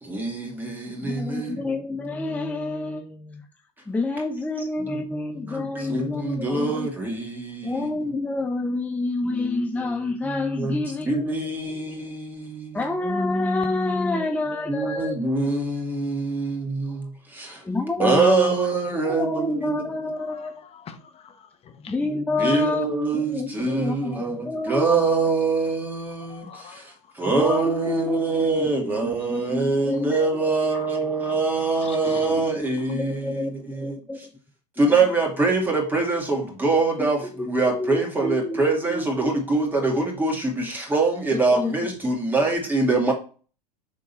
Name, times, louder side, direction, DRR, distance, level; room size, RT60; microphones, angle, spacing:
voice 1, 0.0-1.8 4.6-4.7 4.9-5.0 5.5-7.9 10.6-13.0 14.7-17.6 18.0-20.1 22.4-34.3 34.8-43.1, right 3 dB, 10° right, 2.3 m, -24 dB
voice 2, 0.9-3.4 3.9-6.9 7.6-11.3 11.7-11.9 12.7-15.1 17.6-18.5 19.0-20.6 21.9-22.9 23.1-25.2 27.2-30.3 32.0-32.6 32.9-34.3 37.0-37.1 37.7-39.3 41.5-41.7, left 2 dB, 5° left, 0.7 m, -28 dB
voice 3, 20.2-21.9 26.3-26.9 29.3-29.5 29.9-30.0 31.8-32.4, left 7 dB, 30° left, 1.2 m, -45 dB
6.3 x 3.7 x 4.2 m
hypercardioid pair, 95°, 20 cm